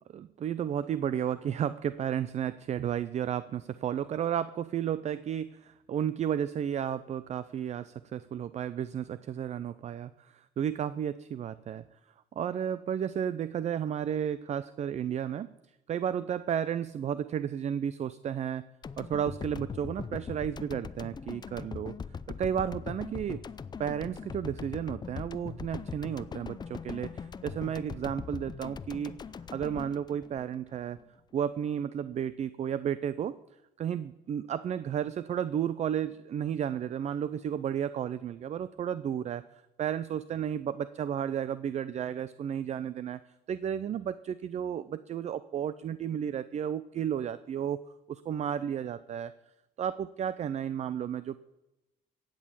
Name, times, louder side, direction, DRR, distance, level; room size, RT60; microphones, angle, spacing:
voice 1, 0.1-11.9 12.3-15.5 15.9-18.6 19.0-22.0 22.4-23.4 23.8-29.1 29.5-31.0 31.3-33.4 33.8-43.2 43.5-49.3 49.8-51.4, right 9 dB, 40° right, 15 dB, 0.5 m, -33 dB
sound 1, 18.8-31.0, left 6 dB, 25° left, 0.5 m, -41 dB
15.5 x 9.0 x 7.4 m, 0.97 s
cardioid pair, 110°, 17 cm